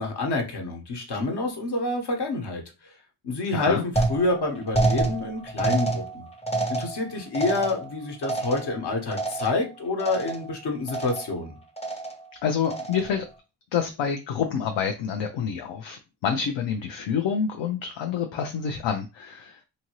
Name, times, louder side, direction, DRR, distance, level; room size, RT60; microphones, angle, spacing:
voice 1, 0.0-2.6 3.2-6.3 6.7-11.6, left 2 dB, 55° left, 3 dB, 1.2 m, -28 dB
voice 2, 3.5-3.8 12.4-13.3 13.7-19.6, left 7 dB, 70° left, 5 dB, 0.6 m, -27 dB
sound 1, 4.0-9.7 10.0-10.6 10.9-11.4 11.8-12.3 12.6-13.2, right 2 dB, 15° left, 0.7 m, -28 dB
2.8 x 2.6 x 3.0 m, 0.29 s
cardioid pair, 60°, 46 cm